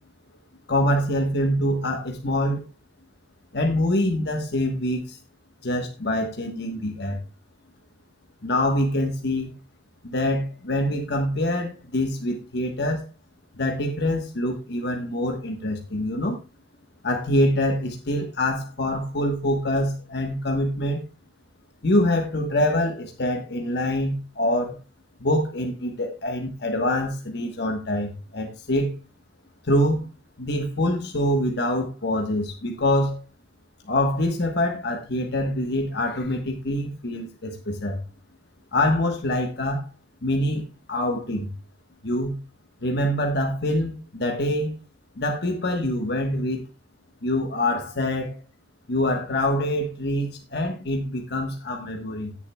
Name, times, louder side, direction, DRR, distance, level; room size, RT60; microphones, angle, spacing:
voice 1, 0.7-2.6 3.5-5.2 5.6-7.2 8.4-9.5 10.0-13.0 13.5-16.4 17.0-21.0 21.8-24.8 25.2-28.9 29.6-30.1 30.4-33.2 33.9-38.0 38.7-39.9 40.2-41.5 42.0-42.4 42.8-44.8 45.2-46.6 47.2-48.4 48.9-52.4, left 1 dB, 60° left, 2 dB, 1.3 m, -25 dB
17.5 x 7.3 x 2.3 m, 0.29 s
head